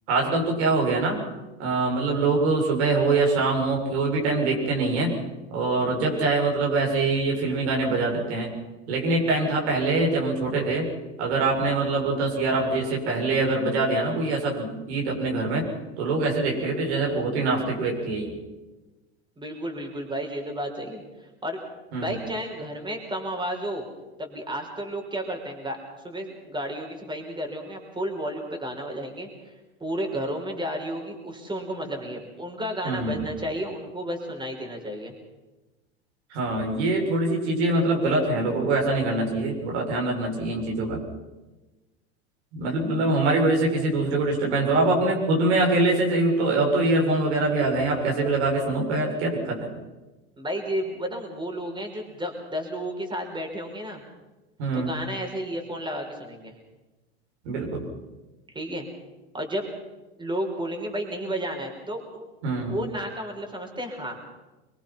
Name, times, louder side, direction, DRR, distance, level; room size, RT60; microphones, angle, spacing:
voice 1, 0.1-1.2 1.6-5.2 5.5-8.5 8.9-10.9 11.2-15.7 16.0-18.3 21.9-22.1 32.8-33.2 36.3-41.0 42.5-49.7 54.6-54.9 57.4-57.8 62.4-62.8, right 2 dB, 75° right, 0 dB, 7.6 m, -24 dB
voice 2, 19.4-21.6 22.0-23.9 24.2-25.8 26.0-29.5 29.8-35.1 50.4-54.0 54.7-56.5 58.5-58.9 59.3-59.7 60.2-62.2 62.7-64.2, equal, 15° right, 2 dB, 5.5 m, -32 dB
25.0 x 22.5 x 6.0 m, 1.1 s
hypercardioid pair, 95°, 34 cm